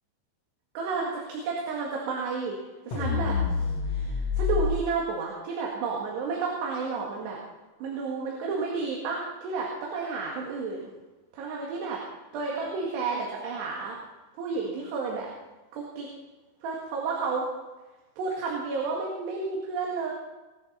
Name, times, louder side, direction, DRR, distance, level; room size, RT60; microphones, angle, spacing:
voice 1, 0.8-2.6 2.9-7.4 7.8-10.9 11.3-12.0 12.3-14.0 14.4-15.3 15.7-16.1 16.6-17.5 18.2-20.1, right 4 dB, 70° right, -2 dB, 4.0 m, -31 dB
sound 1, 2.9-4.7, left 5 dB, 65° left, 1.7 m, -27 dB
20.5 x 13.5 x 4.1 m, 1.2 s
omnidirectional pair, 5.3 m